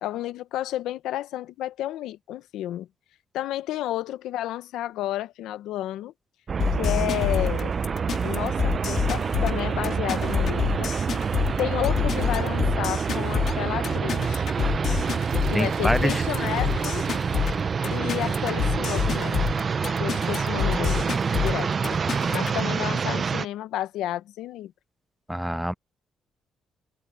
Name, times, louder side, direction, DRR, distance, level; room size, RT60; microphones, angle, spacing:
voice 1, 0.0-2.9 3.3-6.1 6.8-7.7 8.2-10.9 11.6-14.5 15.5-17.0 17.9-19.4 20.0-21.1 21.4-21.7 22.3-24.7, left 13 dB, 90° left, 0.9 m, -31 dB
sound 1, 6.5-23.5, right 6 dB, 40° right, 0.6 m, -27 dB
sound 2, 6.6-22.6, left 8 dB, 65° left, 2.4 m, -28 dB
sound 3, 15.0-19.0, right 10 dB, 75° right, 4.1 m, -47 dB
voice 2, 15.5-16.2 25.3-25.7, equal, 5° right, 0.4 m, -25 dB
cardioid pair, 90°, 0 cm